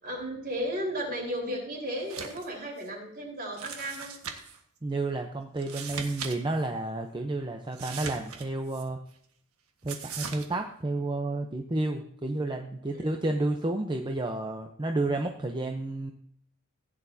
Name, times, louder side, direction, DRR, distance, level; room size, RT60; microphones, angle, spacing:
voice 1, 0.0-4.1 12.9-13.1, equal, 45° right, -1 dB, 4.2 m, -34 dB
sound 1, 2.0-2.5 2.8-2.9 3.6-4.6 5.6-6.3 6.6-6.7 7.7-8.8 9.9-10.5, right 6 dB, 75° right, 1.5 m, -39 dB
voice 2, 4.8-9.0 9.8-16.1, right 2 dB, 20° right, 4 dB, 0.7 m, -31 dB
16.0 x 10.0 x 2.8 m, 0.67 s
head